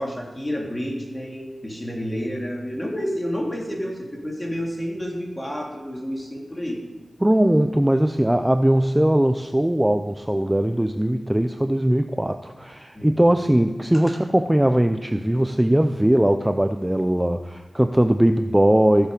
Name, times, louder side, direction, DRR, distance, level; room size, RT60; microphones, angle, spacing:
voice 1, 0.0-6.8 12.9-13.2 14.1-14.2, equal, 15° left, -1 dB, 3.1 m, -30 dB
voice 2, 7.2-19.1, right 1 dB, 10° right, 8 dB, 0.5 m, -20 dB
15.5 x 7.3 x 5.1 m, 1.3 s
wide cardioid pair, 60°, 0 cm